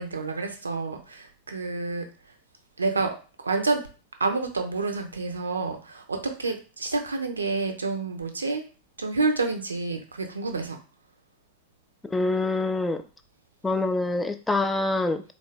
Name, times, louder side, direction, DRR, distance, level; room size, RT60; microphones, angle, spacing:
voice 1, 0.0-2.0 2.8-3.2 3.4-3.8 4.2-8.6 9.0-10.8, right 3 dB, 75° right, 5 dB, 0.6 m, -28 dB
voice 2, 12.0-13.0 13.6-15.2, left 2 dB, 10° left, 7 dB, 0.4 m, -25 dB
3.8 x 2.5 x 3.4 m, 0.34 s
figure-of-eight pair, 90°, 0 cm